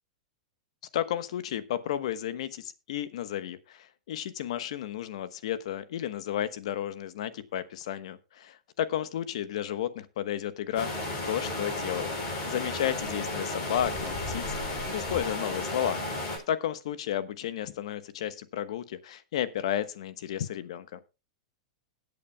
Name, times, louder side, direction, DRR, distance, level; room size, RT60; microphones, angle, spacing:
voice 1, 0.9-10.9 11.3-12.1 12.4-16.0 16.5-21.0, left 10 dB, 70° left, 13 dB, 1.1 m, -33 dB
sound 1, 10.7-16.4, left 2 dB, 40° left, 5.9 m, -33 dB
20.5 x 8.4 x 2.2 m, 0.28 s
hypercardioid pair, 135°, 3 cm